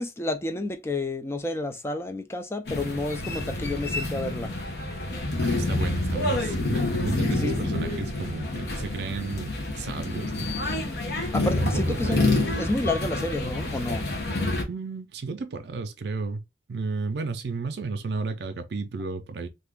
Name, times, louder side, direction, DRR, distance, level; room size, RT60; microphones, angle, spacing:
voice 1, 0.0-4.5 7.4-7.6 11.2-12.3 12.6-14.1, left 2 dB, 15° left, 0.3 m, -30 dB
sound 1, 2.7-14.6, left 2 dB, 65° left, 0.8 m, -28 dB
voice 2, 5.4-10.5 11.4-12.2 14.7-16.4 16.7-19.5, right 4 dB, 70° right, 0.4 m, -33 dB
2.6 x 2.4 x 3.5 m
head